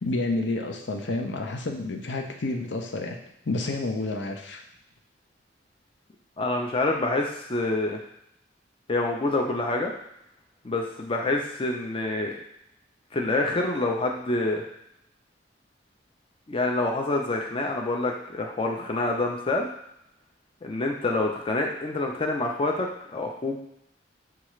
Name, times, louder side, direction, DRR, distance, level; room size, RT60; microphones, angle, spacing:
voice 1, 0.0-3.2 3.5-4.6, left 2 dB, 75° left, 2 dB, 0.6 m, -29 dB
voice 2, 6.4-8.0 8.9-9.9 10.6-12.3 13.1-14.6 16.5-19.7 20.6-23.6, left 2 dB, 30° left, 1 dB, 0.5 m, -27 dB
6.7 x 2.4 x 3.1 m, 0.79 s
head